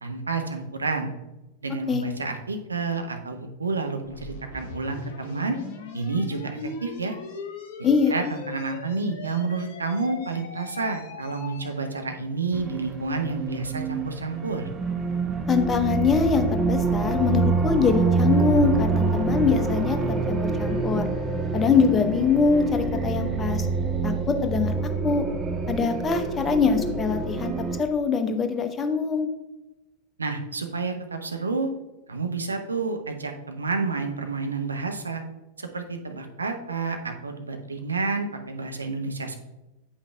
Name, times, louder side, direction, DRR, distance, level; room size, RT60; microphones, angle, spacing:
voice 1, 0.0-1.1 1.6-5.6 5.9-7.1 8.1-14.7 30.2-31.7 32.1-35.2 35.6-39.4, right 4 dB, 75° right, 5 dB, 0.7 m, -29 dB
sound 1, 4.0-11.8, left 4 dB, 50° left, 1.0 m, -40 dB
voice 2, 7.8-8.1 15.5-21.0 21.5-23.7 24.0-24.7 25.0-25.2 25.7-27.5 27.8-29.3, left 5 dB, 20° left, 6 dB, 0.7 m, -23 dB
sound 2, 12.5-27.8, right 4 dB, 25° right, 0.5 m, -26 dB
7.9 x 5.6 x 2.3 m, 1.0 s
figure-of-eight pair, 90°, 0 cm